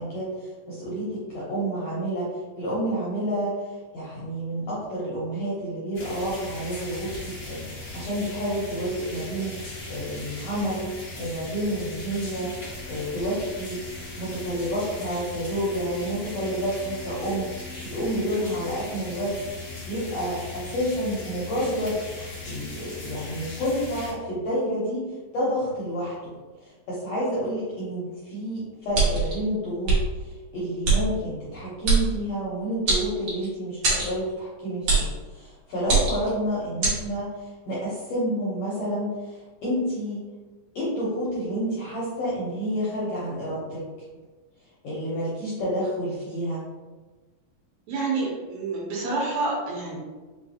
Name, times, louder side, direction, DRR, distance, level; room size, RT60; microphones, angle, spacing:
voice 1, 0.0-9.6 9.9-10.9 11.2-12.6 12.9-13.8 14.2-17.5 17.8-40.2 40.7-43.8 44.8-46.6, equal, 75° left, -8 dB, 1.5 m, -29 dB
sound 1, 5.9-24.1, left 3 dB, 90° left, 0.8 m, -39 dB
sound 2, 28.9-29.3 29.8-30.0 30.8-31.0 31.8-32.0 32.9-33.5 33.8-34.1 34.9-35.1 35.8-36.3 36.8-37.0, right 4 dB, 60° right, 1.6 m, -21 dB
voice 2, 47.9-50.0, right 3 dB, 85° right, -4 dB, 2.7 m, -28 dB
5.6 x 2.3 x 2.8 m, 1.3 s
omnidirectional pair, 4.0 m